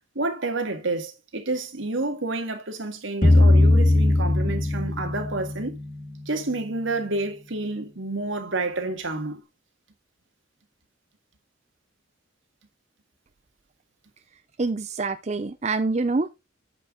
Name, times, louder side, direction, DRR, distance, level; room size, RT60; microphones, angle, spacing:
voice 1, 0.2-5.8 6.3-9.4, right 2 dB, 80° right, 1.9 m, -29 dB
sound 1, 3.2-6.3, left 2 dB, 45° left, 1.9 m, -19 dB
voice 2, 14.6-16.3, right 3 dB, 35° right, 0.5 m, -26 dB
9.2 x 5.7 x 3.7 m
head